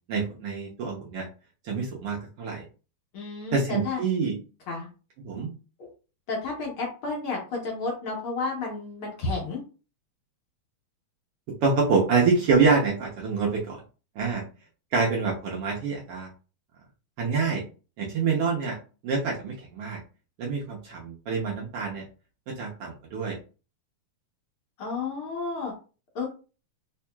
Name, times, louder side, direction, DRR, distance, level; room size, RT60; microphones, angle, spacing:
voice 1, 0.1-1.3 1.6-2.6 3.5-4.4 5.2-5.5 11.6-13.8 14.1-14.4 14.9-16.3 17.2-17.6 18.0-18.8 19.0-20.0 20.4-22.0 22.6-23.4, right 4 dB, 75° right, -3 dB, 1.3 m, -26 dB
voice 2, 3.1-4.0 4.7-4.9 5.8-5.9 6.3-9.6 24.8-25.7 26.1-26.3, left 3 dB, 65° left, -2 dB, 1.4 m, -31 dB
4.6 x 2.8 x 2.2 m, 0.34 s
omnidirectional pair, 3.6 m